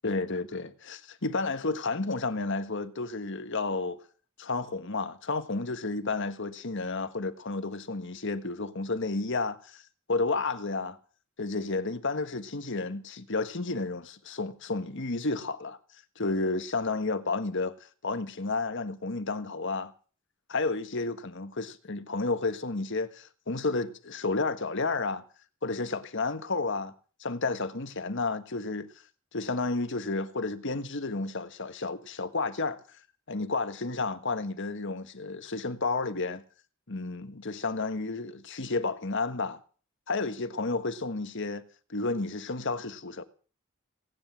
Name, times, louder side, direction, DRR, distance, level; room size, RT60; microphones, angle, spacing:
voice 1, 0.0-4.0 4.4-9.8 10.1-11.0 11.4-15.8 16.2-19.9 20.5-25.2 25.6-26.9 27.2-28.9 29.3-32.8 33.3-36.4 36.9-39.6 40.1-41.6 41.9-43.2, left 3 dB, 60° left, 1.5 m, -31 dB
19.0 x 10.0 x 7.4 m
head